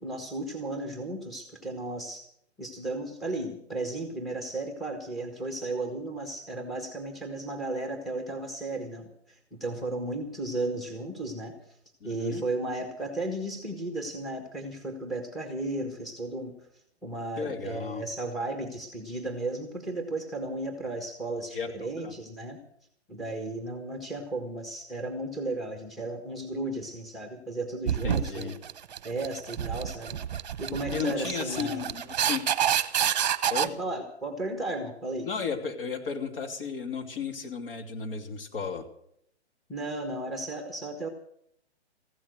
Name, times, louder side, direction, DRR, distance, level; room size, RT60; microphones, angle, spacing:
voice 1, 0.0-2.3 2.6-11.7 12.0-16.5 17.0-22.6 23.1-28.5 29.0-30.2 30.6-31.9 33.6-35.3 39.7-41.1, right 2 dB, ahead, 4 dB, 1.5 m, -34 dB
voice 2, 12.0-12.4 17.4-18.0 21.5-22.1 27.8-28.5 30.9-32.4 33.5-33.7 35.2-38.8, left 5 dB, 55° left, 4 dB, 2.9 m, -34 dB
sound 1, 27.9-33.7, right 10 dB, 40° right, 1.1 m, -28 dB
15.5 x 12.5 x 6.6 m, 0.69 s
hypercardioid pair, 140°, 34 cm